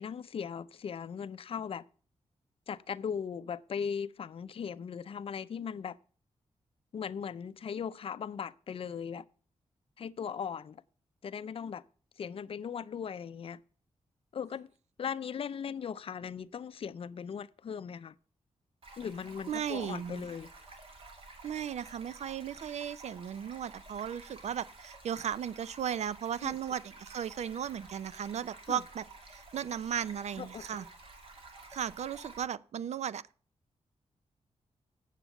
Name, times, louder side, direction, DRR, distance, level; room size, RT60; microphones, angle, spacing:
voice 1, 0.0-1.8 2.7-6.0 6.9-9.2 10.0-10.8 11.2-11.8 12.2-13.6 14.3-14.7 15.0-18.1 19.0-20.5 26.4-26.6 28.7-28.8 30.4-30.7, left 7 dB, 50° left, 0.5 m, -38 dB
Stream, 18.8-32.4, right 3 dB, 50° right, 2.5 m, -52 dB
voice 2, 19.5-20.3 21.4-30.9 31.7-33.2, right 9 dB, 70° right, 0.5 m, -36 dB
9.0 x 7.4 x 7.0 m
wide cardioid pair, 165°, 12 cm